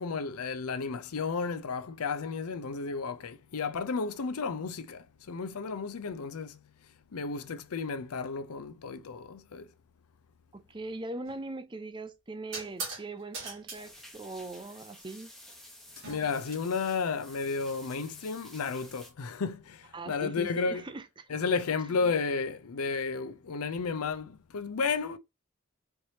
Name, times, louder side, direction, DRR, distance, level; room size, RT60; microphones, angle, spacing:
voice 1, 0.0-6.6 7.1-9.7 16.1-20.8 21.3-25.2, left 5 dB, 90° left, 0.5 m, -33 dB
voice 2, 10.5-15.3 19.9-21.3 22.0-22.1, right 2 dB, 20° right, 0.5 m, -41 dB
sound 1, 11.2-11.5 12.5-13.1 13.3-13.8 16.0-16.5, right 4 dB, 55° right, 2.1 m, -40 dB
sound 2, 13.7-19.1, left 1 dB, ahead, 0.9 m, -52 dB
4.5 x 3.2 x 2.8 m
head